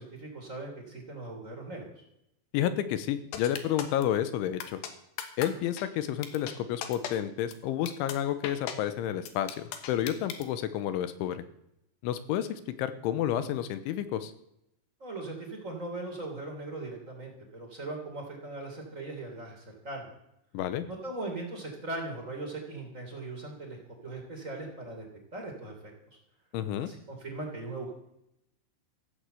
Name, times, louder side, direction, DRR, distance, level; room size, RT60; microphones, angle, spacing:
voice 1, 0.0-2.0 15.0-20.1 20.9-25.0 25.3-25.7 26.8-27.9, right 2 dB, 20° right, 1 dB, 2.9 m, -39 dB
voice 2, 2.5-4.8 5.4-11.4 12.0-14.3 20.5-20.9 26.5-26.9, left 11 dB, 85° left, 12 dB, 3.4 m, -30 dB
sound 1, 3.3-4.0 4.6-4.9 5.2-5.5 5.8-5.9 6.2-6.5 6.8-7.1 7.5-7.6 7.9-8.1 8.4-8.7 9.3-10.4, left 9 dB, 70° left, 3.2 m, -36 dB
15.0 x 9.6 x 8.0 m, 0.79 s
omnidirectional pair, 5.5 m